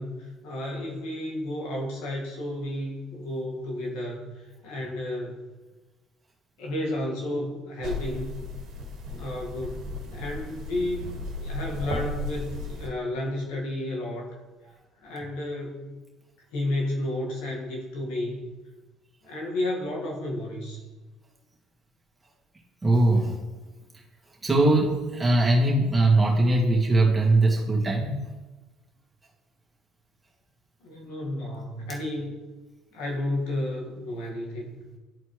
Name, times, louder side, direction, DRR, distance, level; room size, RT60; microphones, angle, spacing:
voice 1, 0.0-5.4 6.6-8.4 9.1-11.1 11.4-14.4 15.0-16.0 16.5-18.5 19.2-20.8 30.8-32.4 32.9-34.7, left 1 dB, 80° left, -2 dB, 1.9 m, -32 dB
sound 1, 7.8-12.9, left 2 dB, 65° right, 1.7 m, -35 dB
voice 2, 22.8-23.4 24.4-28.2, right 2 dB, 15° right, -3 dB, 2.1 m, -21 dB
12.5 x 4.2 x 3.2 m, 1.2 s
supercardioid pair, 85°, 0 cm